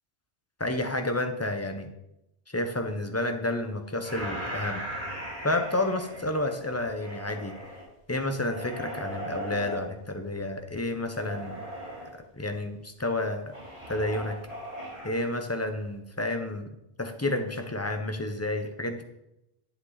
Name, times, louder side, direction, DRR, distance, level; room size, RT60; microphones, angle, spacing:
voice 1, 0.6-1.9 2.5-4.8 5.4-7.5 8.1-11.6 12.3-13.5 13.9-14.4 15.0-16.7 17.0-19.0, left 1 dB, 15° left, 6 dB, 0.9 m, -30 dB
sound 1, 4.0-7.8 8.4-9.8 11.1-12.2 13.5-15.3, equal, 35° right, 3.3 m, -38 dB
10.5 x 8.5 x 4.1 m, 0.87 s
omnidirectional pair, 1.1 m